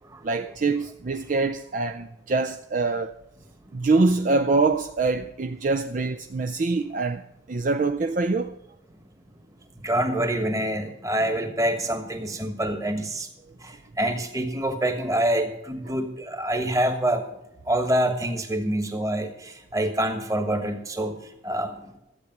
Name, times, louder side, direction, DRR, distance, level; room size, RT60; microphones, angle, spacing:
voice 1, 0.2-3.1 3.7-7.2 7.5-8.5, right 3 dB, 40° right, 0.4 m, -24 dB
voice 2, 9.7-13.3 13.6-17.3 17.6-22.0, right 1 dB, 15° right, 1.3 m, -26 dB
13.5 x 8.4 x 5.9 m
head